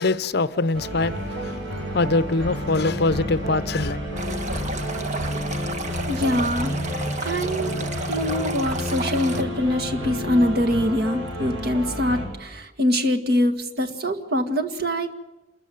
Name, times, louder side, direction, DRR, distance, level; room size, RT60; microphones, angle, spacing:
voice 1, 0.0-4.0, left 3 dB, 55° left, 0.7 m, -23 dB
sound 1, 0.7-12.3, equal, 85° right, 7.9 m, -30 dB
Stream, 4.2-9.4, right 3 dB, 40° right, 1.5 m, -33 dB
voice 2, 6.1-6.7 7.2-7.7 8.1-15.1, equal, 55° right, 1.9 m, -24 dB
27.5 x 14.0 x 9.3 m
head